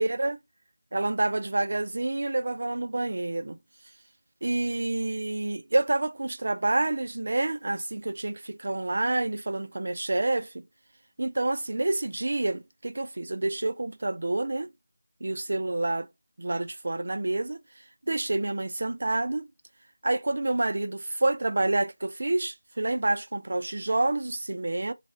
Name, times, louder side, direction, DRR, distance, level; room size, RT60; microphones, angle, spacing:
voice 1, 0.0-0.4 0.9-3.6 4.4-10.6 11.2-14.7 15.2-16.1 16.4-17.6 18.1-19.5 20.0-24.9, right 2 dB, 40° right, 0.3 m, -28 dB
3.2 x 2.4 x 4.1 m
figure-of-eight pair, 180°, 0 cm